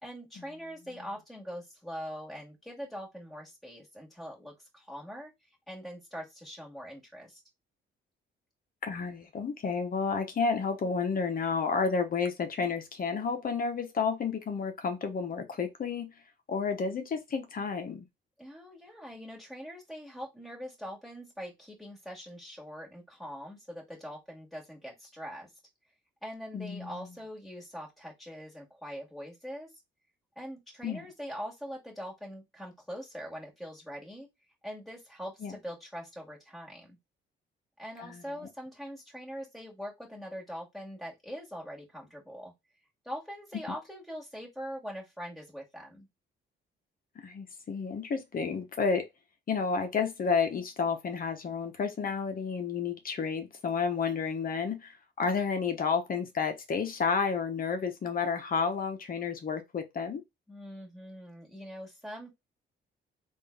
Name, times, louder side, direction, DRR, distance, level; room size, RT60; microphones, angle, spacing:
voice 1, 0.0-5.3 5.7-7.4 18.4-25.5 26.2-29.7 30.4-34.3 34.6-37.0 37.8-42.5 43.0-46.1 60.5-62.3, equal, ahead, 2.1 m, -43 dB
voice 2, 8.8-16.1 16.5-18.1 26.5-27.1 30.8-31.1 35.4-35.5 38.0-38.2 47.2-49.1 49.5-60.2, left 5 dB, 45° left, 0.9 m, -31 dB
3.7 x 2.6 x 3.4 m
cardioid pair, 90°, 20 cm